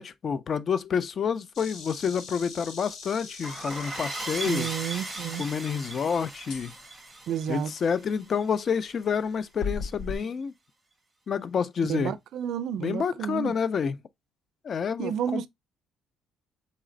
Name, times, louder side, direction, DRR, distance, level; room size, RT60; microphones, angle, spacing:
voice 1, 0.0-4.7 5.4-6.7 7.5-10.5 11.3-12.1 12.8-14.0 14.6-15.5, left 6 dB, 35° left, 0.4 m, -28 dB
Insect, 1.5-6.5, left 5 dB, 50° left, 0.9 m, -45 dB
sound 1, 3.4-8.7, right 2 dB, 10° right, 0.7 m, -38 dB
voice 2, 4.5-5.5 7.3-7.7 11.9-13.6 15.0-15.5, right 9 dB, 55° right, 0.4 m, -31 dB
sound 2, 6.5-6.8 9.6-10.1, left 4 dB, 80° left, 0.6 m, -33 dB
4.2 x 3.2 x 3.7 m
cardioid pair, 175°, 0 cm